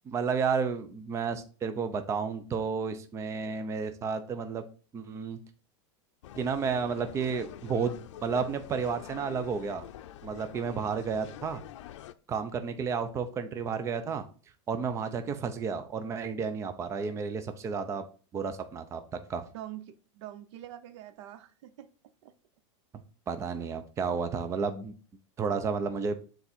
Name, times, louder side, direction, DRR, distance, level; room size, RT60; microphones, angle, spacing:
voice 1, 0.1-4.6 4.9-5.4 6.4-9.8 10.2-11.6 12.3-14.2 14.7-18.1 18.3-19.0 19.3-19.4 23.3-24.9 25.4-26.1, right 5 dB, 20° right, 9 dB, 0.6 m, -32 dB
sound 1, 6.2-12.1, left 11 dB, 75° left, 0.6 m, -46 dB
voice 2, 19.5-21.9 22.2-22.3, right 12 dB, 70° right, 13 dB, 0.7 m, -45 dB
7.0 x 3.9 x 4.2 m, 0.37 s
supercardioid pair, 150°, 16 cm